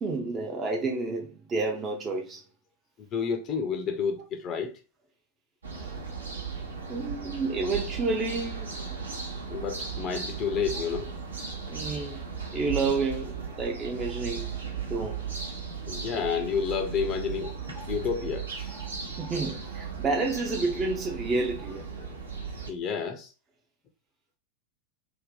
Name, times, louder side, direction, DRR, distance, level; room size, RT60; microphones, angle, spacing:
voice 1, 0.0-2.4 6.9-8.8 11.6-14.6 14.9-15.3 18.7-21.9, right 3 dB, 25° right, 0.4 m, -30 dB
voice 2, 3.1-4.7 9.5-11.1 15.9-18.8 22.7-23.3, left 6 dB, 30° left, 0.4 m, -30 dB
sound 1, 5.6-22.7, right 6 dB, 75° right, 0.7 m, -36 dB
2.6 x 2.2 x 3.6 m
figure-of-eight pair, 90°, 0 cm